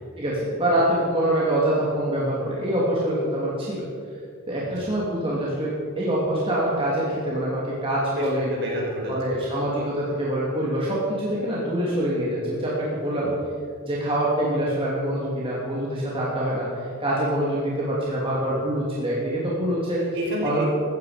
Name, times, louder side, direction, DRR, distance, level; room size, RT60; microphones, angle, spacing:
voice 1, 0.2-3.9 4.5-8.5 9.1-13.3 13.9-20.0 20.4-20.6, right 1 dB, 25° right, -6 dB, 3.0 m, -25 dB
voice 2, 8.1-9.1 13.0-13.4 20.0-20.7, equal, 55° right, -2 dB, 5.2 m, -30 dB
17.0 x 14.5 x 5.2 m, 2.3 s
head